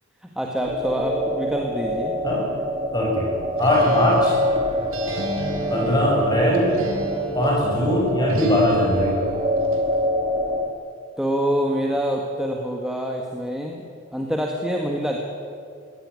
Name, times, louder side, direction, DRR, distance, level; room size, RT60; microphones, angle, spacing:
voice 1, 0.3-2.1 11.2-13.8 14.1-15.2, equal, 5° right, 0 dB, 1.7 m, -25 dB
sound 1, 0.6-10.7, equal, 25° right, 1.8 m, -26 dB
voice 2, 2.9-3.3 3.6-4.3 5.7-6.7 7.3-9.1, left 1 dB, 20° left, -3 dB, 7.7 m, -20 dB
Acoustic guitar, 3.6-7.7 8.3-9.9, right 1 dB, 75° right, 4.0 m, -33 dB
22.0 x 17.5 x 9.7 m, 2.3 s
head